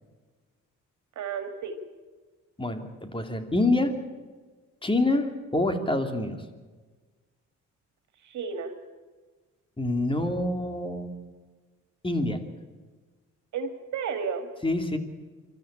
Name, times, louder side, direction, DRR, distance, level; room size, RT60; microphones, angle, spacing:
voice 1, 1.2-1.8 8.2-8.7 13.5-14.5, right 6 dB, 70° right, 7 dB, 2.4 m, -32 dB
voice 2, 2.6-3.9 4.8-6.4 9.8-11.1 12.0-12.4 14.6-15.0, left 2 dB, 15° left, 7 dB, 2.7 m, -26 dB
25.0 x 13.5 x 8.9 m, 1.4 s
cardioid pair, 90°, 30 cm